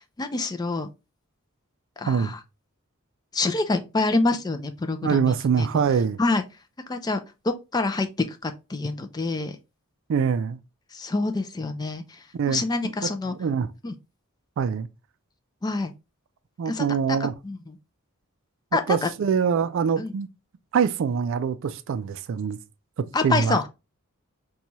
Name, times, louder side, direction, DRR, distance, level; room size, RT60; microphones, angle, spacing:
voice 1, 0.2-0.9 2.0-2.4 3.3-5.7 6.2-6.4 6.9-9.6 10.9-13.3 13.8-13.9 15.6-15.9 16.7-17.2 17.4-17.6 18.7-19.1 20.0-20.1 23.1-23.7, left 3 dB, 20° left, 0.3 m, -27 dB
voice 2, 5.0-6.2 10.1-10.6 12.3-13.7 14.6-14.9 16.6-17.3 18.9-20.3 20.7-22.6 23.0-23.6, right 6 dB, 60° right, 0.3 m, -24 dB
4.1 x 2.3 x 2.8 m
head